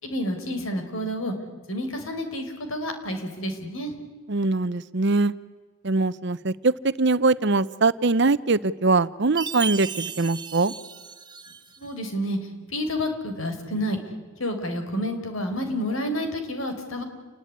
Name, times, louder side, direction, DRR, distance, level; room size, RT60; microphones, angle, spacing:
voice 1, 0.0-1.3 1.7-3.9 11.8-12.4 12.7-14.0 14.4-17.0, equal, 75° left, 6 dB, 4.8 m, -29 dB
voice 2, 4.3-5.3 5.8-10.7, right 3 dB, 55° right, 15 dB, 0.8 m, -22 dB
Chime, 9.4-11.9, right 7 dB, 20° right, 1.2 m, -35 dB
29.0 x 20.5 x 9.6 m, 1.4 s
head